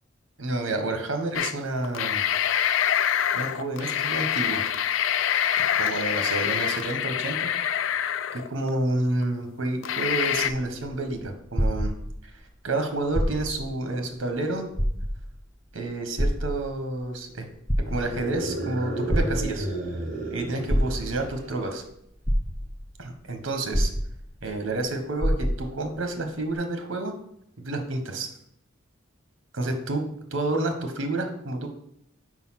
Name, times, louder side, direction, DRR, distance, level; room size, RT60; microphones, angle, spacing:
voice 1, 0.4-2.2 3.3-4.6 5.8-7.5 8.3-11.9 12.6-14.7 15.7-17.4 17.9-19.7 20.3-21.8 23.0-23.9 24.4-27.1 27.6-28.3 29.5-30.0 30.3-31.7, right 2 dB, 65° right, 6 dB, 0.9 m, -29 dB
sound 1, 1.3-1.5 1.8-8.7 9.2-9.3 9.8-10.5, left 9 dB, 70° left, 0.3 m, -25 dB
sound 2, 10.8-12.4 13.0-13.7 14.1-14.2 14.7-15.4 16.2-17.0 17.5-18.4 19.1-19.8 20.7-21.4 21.9-22.0 22.2-23.0 23.7-24.5 24.8-24.9 25.2-25.8 26.5-26.6, equal, 10° left, 0.5 m, -26 dB
sound 3, 18.0-21.6, right 1 dB, 40° right, 1.4 m, -33 dB
4.6 x 4.0 x 5.7 m, 0.74 s
head